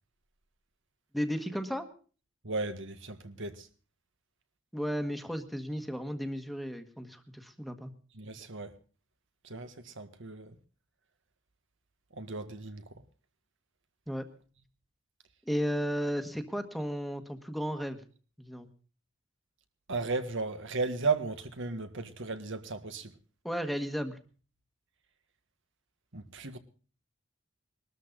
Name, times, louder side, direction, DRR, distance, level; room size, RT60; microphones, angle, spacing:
voice 1, 1.1-1.9 4.7-7.9 14.1-14.2 15.4-18.0 18.4-18.7 23.4-24.2, equal, ahead, 1.5 m, -34 dB
voice 2, 2.4-3.7 8.2-8.7 9.4-10.6 12.1-12.8 19.9-23.1 26.1-26.6, right 4 dB, 65° right, 1.8 m, -35 dB
21.0 x 13.0 x 3.9 m
head